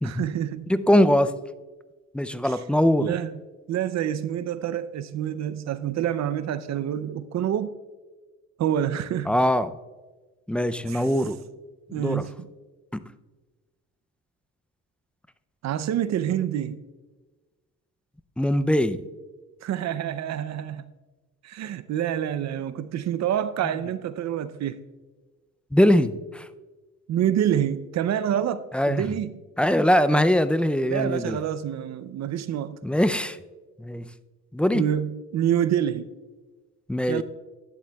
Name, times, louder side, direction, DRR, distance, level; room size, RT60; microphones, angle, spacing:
voice 1, 0.0-0.6 3.0-3.3 3.7-7.7 8.6-9.3 10.9-11.0 11.9-12.5 15.6-16.8 19.6-20.9 21.4-24.8 27.1-29.3 30.1-30.2 30.9-32.8 34.7-36.1 37.1-37.2, right 10 dB, 65° right, 0.5 m, -27 dB
voice 2, 0.7-1.4 2.1-3.2 9.3-9.8 10.5-11.4 11.9-12.3 12.9-13.0 18.4-19.0 25.7-26.5 28.7-29.2 29.6-31.4 32.8-33.4 33.8-34.1 34.5-34.9 36.9-37.2, equal, 5° left, 0.4 m, -22 dB
12.0 x 10.0 x 2.3 m
cardioid pair, 90°, 30 cm